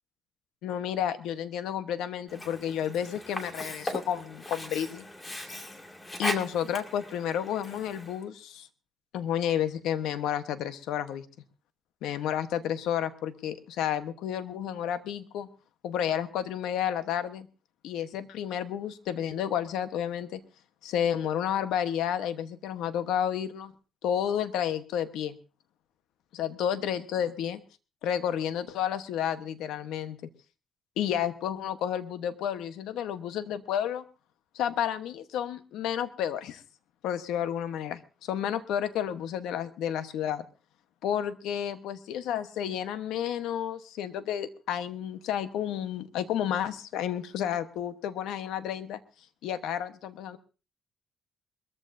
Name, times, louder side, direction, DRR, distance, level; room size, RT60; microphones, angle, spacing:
voice 1, 0.6-5.1 6.2-8.7 9.1-11.2 12.0-15.5 15.8-17.5 17.8-20.4 20.8-23.7 24.0-25.4 26.3-27.6 28.0-30.2 31.0-34.0 34.5-36.6 37.0-40.4 41.0-49.0 49.4-50.4, left 9 dB, 90° left, 10 dB, 1.1 m, -31 dB
Sink (filling or washing), 2.3-8.2, left 1 dB, 20° left, 2.3 m, -38 dB
22.5 x 14.5 x 2.7 m, 0.33 s
cardioid pair, 90°, 0 cm